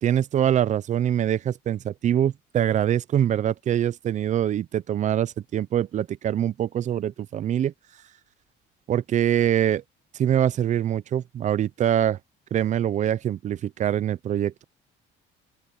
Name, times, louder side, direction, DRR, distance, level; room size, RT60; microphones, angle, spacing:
voice 1, 0.0-7.7 8.9-9.8 10.2-12.2 12.5-14.6, right 10 dB, 35° right, 0.5 m, -24 dB
open air
cardioid pair, 150°, 21 cm